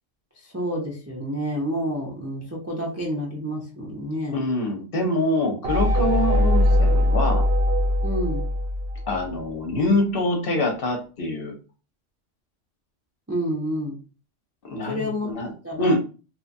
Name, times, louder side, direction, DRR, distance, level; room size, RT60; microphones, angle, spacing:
voice 1, 0.4-4.4 8.0-8.4 13.3-14.0 14.9-15.3 15.6-16.0, equal, 25° right, -3 dB, 0.3 m, -29 dB
voice 2, 4.3-7.4 9.1-11.6 14.6-15.5 15.8-16.0, left 2 dB, 55° left, 3 dB, 0.7 m, -25 dB
sound 1, 5.6-9.4, left 1 dB, 60° right, 0.8 m, -21 dB
2.9 x 2.2 x 2.5 m, 0.34 s
omnidirectional pair, 1.3 m